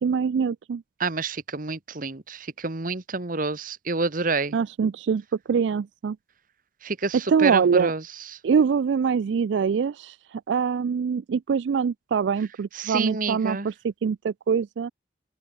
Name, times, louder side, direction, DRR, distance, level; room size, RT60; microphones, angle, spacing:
voice 1, 0.0-0.8 4.5-5.2 5.5-6.2 7.3-7.9 8.4-14.9, right 6 dB, 70° right, 0.3 m, -24 dB
voice 2, 1.0-4.6 6.8-8.0 12.7-13.7, right 3 dB, 45° right, 1.2 m, -28 dB
open air
head